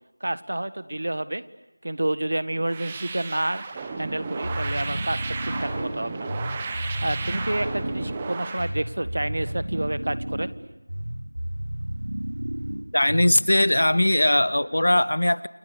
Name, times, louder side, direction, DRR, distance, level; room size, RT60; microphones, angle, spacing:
voice 1, 0.2-1.4 1.8-3.6 4.0-6.3 7.0-10.5, right 1 dB, 55° right, 14 dB, 1.7 m, -29 dB
sound 1, 2.6-8.7, right 4 dB, 10° right, 1.6 m, -34 dB
sound 2, 4.4-13.7, right 1 dB, 85° right, 1.3 m, -32 dB
voice 2, 12.9-15.5, left 1 dB, 75° left, 16 dB, 1.5 m, -20 dB
29.5 x 28.5 x 7.1 m, 1.1 s
figure-of-eight pair, 175°, 0 cm